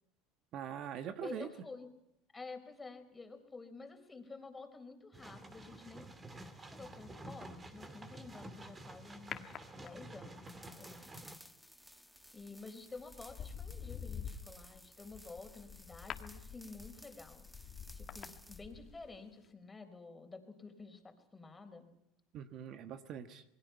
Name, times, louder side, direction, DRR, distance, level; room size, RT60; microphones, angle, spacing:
voice 1, 0.5-1.5 22.3-23.4, right 9 dB, 55° right, 9 dB, 1.4 m, -43 dB
voice 2, 1.2-1.9 2.3-6.1 6.5-9.5 9.8-11.2 12.3-17.5 17.9-21.9, left 3 dB, 15° left, 6 dB, 4.0 m, -50 dB
sound 1, 5.1-11.4, right 2 dB, 20° right, 2.5 m, -50 dB
sound 2, 9.3-10.3 12.2-12.5 13.0-19.2 19.4-19.5, left 7 dB, 40° left, 1.8 m, -47 dB
sound 3, 10.5-18.7, equal, ahead, 1.1 m, -58 dB
28.0 x 21.0 x 5.7 m, 0.80 s
supercardioid pair, 105°, 0 cm